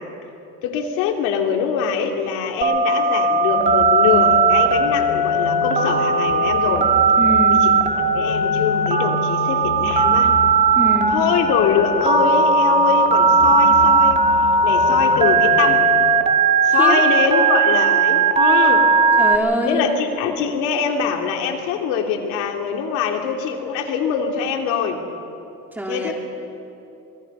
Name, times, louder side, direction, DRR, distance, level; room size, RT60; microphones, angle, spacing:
voice 1, 0.6-6.9 7.5-7.8 8.1-10.3 11.1-15.9 16.6-18.9 19.6-25.0 25.9-26.1, left 6 dB, 80° left, 2 dB, 2.9 m, -23 dB
Telephone, 2.6-19.4, right 4 dB, 20° right, 2.2 m, -17 dB
sound 1, 3.5-16.2, left 6 dB, 40° left, 6.7 m, -32 dB
voice 2, 7.2-7.7 10.7-11.2 16.8-16.9 19.2-19.9 25.7-26.1, right 1 dB, 5° right, -1 dB, 3.1 m, -24 dB
26.0 x 22.5 x 5.5 m, 2.8 s
cardioid pair, 120°, 30 cm